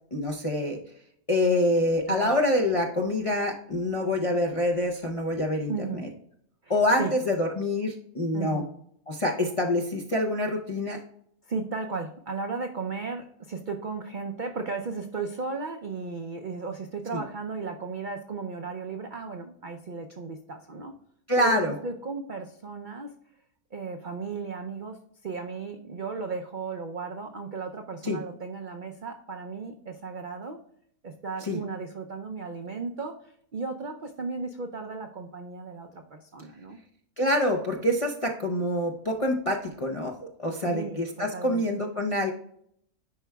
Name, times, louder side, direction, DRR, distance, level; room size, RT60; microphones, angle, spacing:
voice 1, 0.1-0.8 1.3-5.7 6.7-8.6 9.1-11.0 17.1-17.2 21.3-21.7 28.0-28.2 31.4-31.6 37.2-42.3, left 1 dB, 45° left, 0 dB, 0.4 m, -26 dB
voice 2, 2.1-2.4 5.7-6.1 6.6-7.1 8.3-8.7 11.4-20.9 21.4-23.1 23.7-25.0 25.2-30.6 31.0-36.8 40.6-41.6, right 4 dB, 75° right, 4 dB, 0.4 m, -35 dB
10.5 x 4.6 x 2.2 m, 0.68 s
omnidirectional pair, 1.6 m